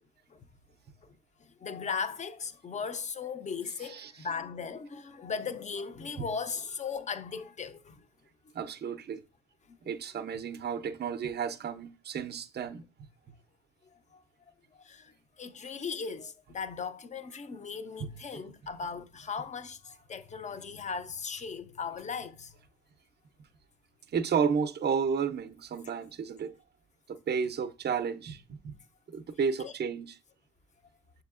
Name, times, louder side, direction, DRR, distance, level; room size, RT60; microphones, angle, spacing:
voice 1, 1.4-8.0 9.7-9.8 14.1-14.2 14.8-22.6 29.6-29.7, left 5 dB, 25° left, 0.4 m, -38 dB
voice 2, 8.5-9.2 9.9-12.8 18.0-18.1 24.1-26.5 27.1-28.7 29.1-30.1, right 6 dB, 35° right, 0.4 m, -32 dB
6.4 x 2.7 x 2.4 m
cardioid pair, 90°, 30 cm